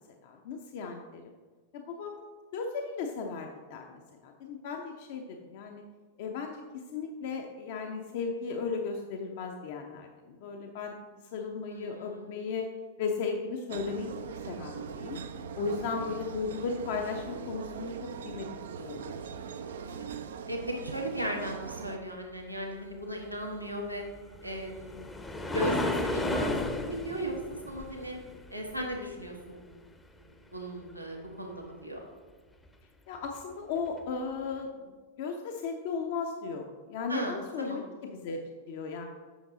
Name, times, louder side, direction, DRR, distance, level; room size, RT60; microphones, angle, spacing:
voice 1, 0.2-1.2 1.7-2.2 2.5-5.8 6.2-11.0 11.3-12.7 13.0-14.1 14.5-15.2 15.6-17.9 18.2-18.5 18.8-19.0 33.1-39.0, left 5 dB, 50° left, 2 dB, 0.7 m, -36 dB
voice 2, 11.7-12.4 19.8-20.1 20.4-24.0 24.4-26.5 26.8-27.3 27.7-28.1 28.5-29.8 30.5-32.0 37.1-37.8, equal, 90° right, 0 dB, 1.2 m, -37 dB
sound 1, 13.7-22.0, right 6 dB, 60° right, 0.5 m, -41 dB
sound 2, 24.1-29.4 33.2-33.4 34.0-34.1, left 2 dB, 10° left, 0.7 m, -33 dB
7.9 x 6.1 x 3.9 m, 1.5 s
figure-of-eight pair, 90°, 0 cm